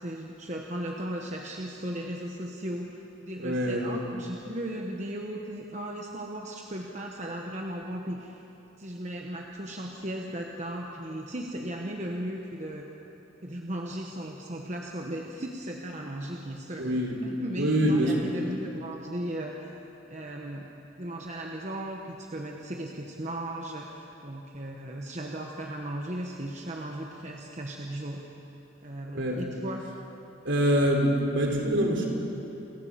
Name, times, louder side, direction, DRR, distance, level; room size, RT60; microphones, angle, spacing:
voice 1, 0.0-8.4 8.8-12.9 13.4-16.9 17.2-19.7 20.1-20.7 21.0-28.2 28.8-29.9, right 1 dB, 35° right, 0 dB, 1.2 m, -36 dB
voice 2, 3.4-3.9 16.8-17.2 17.6-18.3 29.1-29.4 30.4-32.1, equal, 65° right, 1 dB, 3.6 m, -25 dB
28.5 x 14.5 x 7.6 m, 2.9 s
head